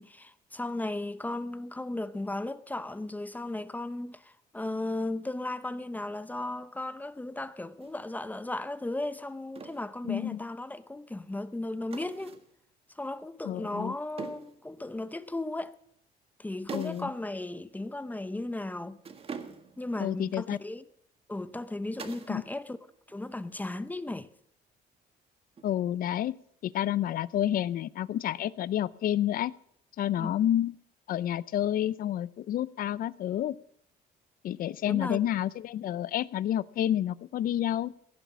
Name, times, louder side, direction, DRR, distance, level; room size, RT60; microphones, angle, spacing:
voice 1, 0.0-12.4 12.9-15.7 16.4-19.0 19.8-20.8 21.3-22.8 23.1-24.3 30.2-30.4 34.8-35.2, left 2 dB, 10° left, 0.7 m, -36 dB
sound 1, 7.8-8.0 9.5-9.9 11.9-12.5 14.2-14.6 16.7-17.1 17.4-17.5 19.0-19.8 22.0-22.4 22.7-23.2 25.6-26.0, right 5 dB, 35° right, 1.7 m, -43 dB
voice 2, 10.0-10.4 13.4-13.9 16.7-17.1 20.0-20.6 22.3-22.4 25.6-26.3 26.6-29.5 30.0-30.7 31.1-33.6 34.4-37.9, left 11 dB, 60° left, 0.6 m, -29 dB
16.5 x 11.0 x 6.2 m
cardioid pair, 110°, 17 cm